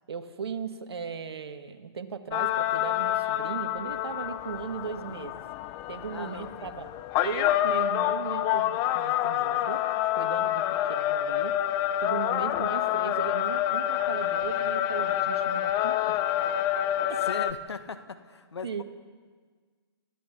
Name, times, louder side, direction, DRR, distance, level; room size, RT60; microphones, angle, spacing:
voice 1, 0.1-5.4 5.9-6.9 7.2-9.8 10.2-11.5 12.0-16.2 17.1-17.2 18.6-18.8, right 6 dB, 65° right, 8 dB, 1.7 m, -37 dB
sound 1, 2.3-17.5, left 12 dB, 25° left, 0.6 m, -27 dB
voice 2, 6.1-6.8 10.7-10.9 17.2-18.8, left 5 dB, 75° left, 9 dB, 1.7 m, -39 dB
30.0 x 14.5 x 5.9 m, 1.5 s
hypercardioid pair, 135°, 14 cm